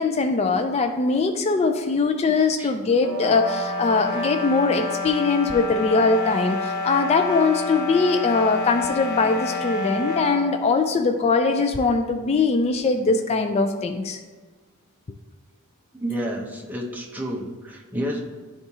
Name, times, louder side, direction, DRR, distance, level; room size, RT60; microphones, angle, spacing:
voice 1, 0.0-14.2, left 4 dB, 30° left, 5 dB, 0.3 m, -21 dB
sound 1, 3.0-10.5, left 3 dB, 55° left, 1.0 m, -29 dB
voice 2, 15.9-18.2, equal, 10° right, -2 dB, 0.7 m, -30 dB
10.0 x 3.6 x 2.7 m, 1.4 s
head